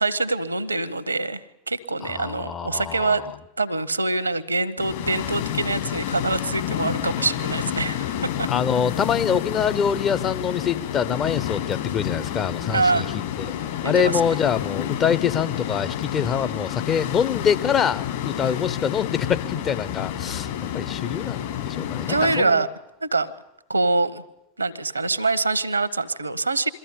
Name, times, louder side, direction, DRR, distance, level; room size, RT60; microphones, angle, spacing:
voice 1, 0.0-3.3 3.6-8.5 12.7-13.2 13.8-14.2 22.1-22.7 23.0-23.3 23.7-24.2 24.6-26.7, right 3 dB, 80° right, 17 dB, 0.9 m, -24 dB
voice 2, 2.0-3.3 8.5-13.1 13.4-13.5 13.8-22.6, left 7 dB, 30° left, 12 dB, 0.8 m, -25 dB
sound 1, 4.8-22.4, left 10 dB, 55° left, 3.7 m, -29 dB
22.5 x 14.5 x 10.0 m, 0.90 s
figure-of-eight pair, 85°, 0 cm